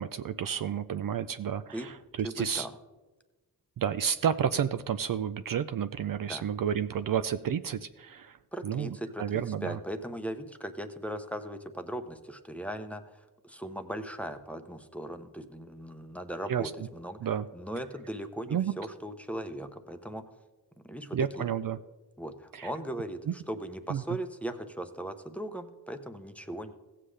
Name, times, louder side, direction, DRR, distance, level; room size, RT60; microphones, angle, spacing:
voice 1, 0.0-1.9 2.2-2.7 3.8-8.4 8.6-8.9 9.2-9.8 16.5-16.6 17.2-17.4 18.5-18.7 21.1-21.8 22.6-22.7 23.9-24.0, right 8 dB, 55° right, 12 dB, 0.5 m, -30 dB
voice 2, 2.2-2.8 6.3-6.5 8.5-17.2 17.5-20.2 20.8-21.5 22.2-26.7, right 1 dB, 5° left, 7 dB, 0.8 m, -38 dB
16.0 x 7.5 x 3.3 m, 1.2 s
cardioid pair, 65°, 40 cm